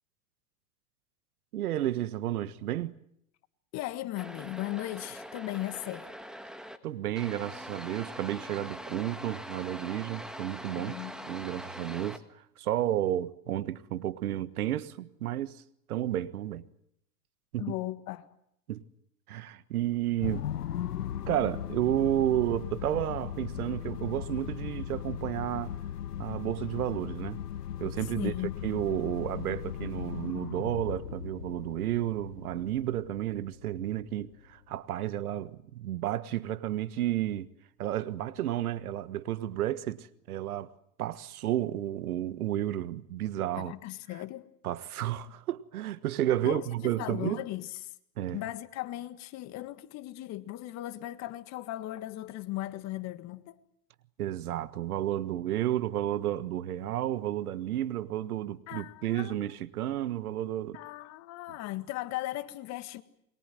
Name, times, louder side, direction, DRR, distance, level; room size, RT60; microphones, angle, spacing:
voice 1, 1.5-2.9 6.8-11.0 11.3-12.2 12.6-15.6 15.9-16.6 17.5-17.7 18.7-18.8 19.3-20.5 21.3-25.8 26.2-27.4 27.8-28.3 28.6-37.5 37.8-40.7 41.0-43.7 44.6-47.4 48.2-48.4 54.2-60.8, right 12 dB, 70° right, 1.5 m, -32 dB
voice 2, 3.7-6.1 10.7-11.3 17.6-18.3 28.1-28.6 43.5-44.5 46.4-47.8 48.3-53.6 58.7-59.5 60.7-63.0, left 16 dB, 35° left, 1.7 m, -37 dB
sound 1, 4.1-6.8 7.2-12.2, equal, ahead, 1.6 m, -43 dB
sound 2, 20.2-34.7, left 10 dB, 85° left, 1.3 m, -38 dB
28.5 x 23.0 x 7.6 m
hypercardioid pair, 125°, 45 cm